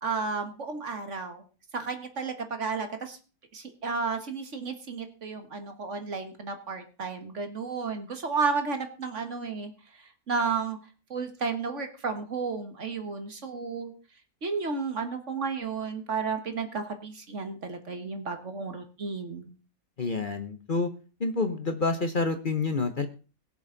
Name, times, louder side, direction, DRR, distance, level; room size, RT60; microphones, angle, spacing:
voice 1, 0.0-1.4 1.7-3.2 3.5-9.7 10.0-10.8 11.1-13.9 14.4-19.5, right 4 dB, 55° right, 7 dB, 1.9 m, -32 dB
voice 2, 20.0-20.9 21.2-23.1, left 3 dB, 40° left, 8 dB, 1.1 m, -28 dB
21.5 x 7.2 x 4.0 m, 0.35 s
omnidirectional pair, 1.5 m